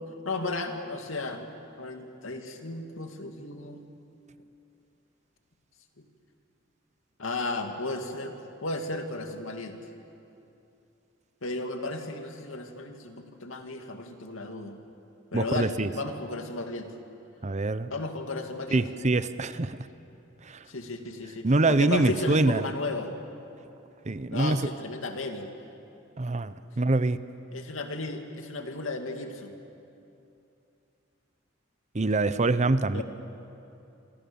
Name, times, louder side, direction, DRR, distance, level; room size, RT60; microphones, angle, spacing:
voice 1, 0.0-1.4 1.8-3.8 6.0-6.1 7.2-9.8 11.4-14.8 15.3-16.9 17.9-18.8 20.7-23.1 24.3-25.5 27.5-29.5 32.9-33.0, left 2 dB, 80° left, 4 dB, 2.5 m, -34 dB
voice 2, 15.3-15.9 17.4-17.9 18.7-19.9 20.4-20.7 21.4-22.7 24.0-24.7 26.2-27.2 31.9-33.0, right 2 dB, 35° right, 13 dB, 0.8 m, -25 dB
27.5 x 26.0 x 7.1 m, 2.7 s
head